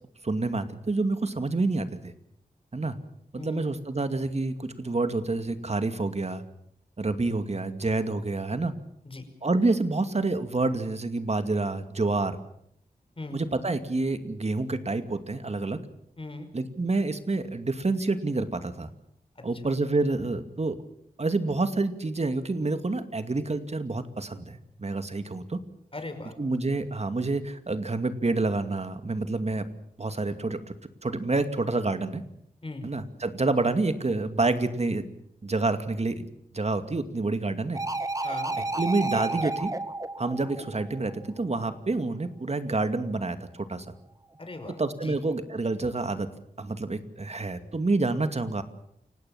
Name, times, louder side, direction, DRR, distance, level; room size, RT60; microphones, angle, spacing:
voice 1, 0.2-2.1 2.7-3.0 3.3-6.4 7.0-8.7 9.4-12.4 13.3-15.8 16.5-18.9 19.4-20.8 21.2-25.6 26.4-29.7 30.0-30.8 31.0-32.2 32.8-35.1 35.4-36.3 36.5-37.8 38.8-39.8 40.2-43.9 44.8-46.3 46.6-48.6, right 3 dB, 45° right, 9 dB, 2.4 m, -28 dB
voice 2, 3.4-3.7 9.1-9.3 13.2-13.4 16.2-16.5 19.4-19.5 25.9-26.3 32.6-32.9 38.2-38.6 44.4-45.2, left 2 dB, 35° left, 7 dB, 5.4 m, -39 dB
sound 1, 37.7-41.3 44.8-44.9, right 2 dB, 20° right, 2.1 m, -32 dB
29.0 x 17.5 x 7.3 m, 0.71 s
cardioid pair, 50°, 15 cm